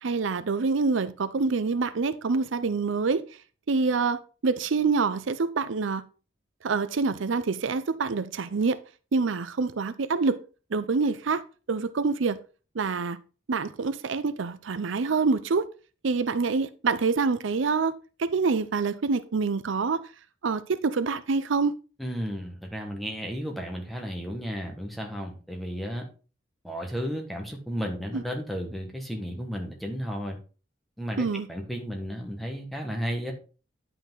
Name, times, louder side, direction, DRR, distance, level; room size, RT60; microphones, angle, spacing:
voice 1, 0.0-3.2 3.7-6.0 6.6-8.8 9.1-10.4 10.7-11.4 11.7-12.4 12.7-13.2 13.5-15.7 16.0-17.9 18.2-20.0 20.4-21.7 28.1-28.2 31.2-31.5, right 4 dB, 75° right, 0.5 m, -26 dB
voice 2, 22.0-26.1 26.6-30.4 31.0-33.3, equal, ahead, 1.7 m, -33 dB
10.0 x 5.9 x 3.9 m
head